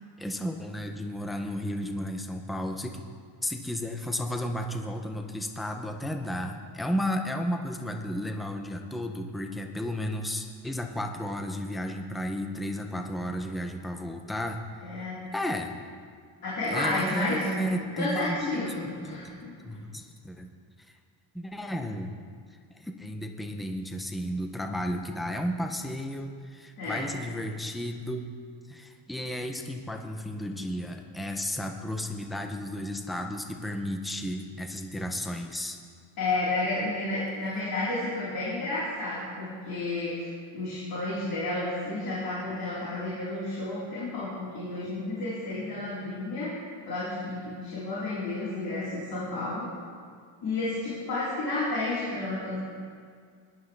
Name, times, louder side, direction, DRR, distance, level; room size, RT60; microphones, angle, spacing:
voice 1, 0.2-3.0 3.4-15.8 16.7-18.6 19.0-19.2 19.6-20.5 20.9-21.0 21.3-22.1 22.7-28.2 28.7-35.8, equal, ahead, 4 dB, 0.3 m, -33 dB
voice 2, 14.8-15.2 16.4-17.4 17.9-19.5 26.8-27.1 36.2-40.3 40.5-46.5 46.9-49.7 50.4-52.6, left 2 dB, 45° left, -10 dB, 3.8 m, -31 dB
19.0 x 11.5 x 3.2 m, 2.1 s
cardioid pair, 175°, 48 cm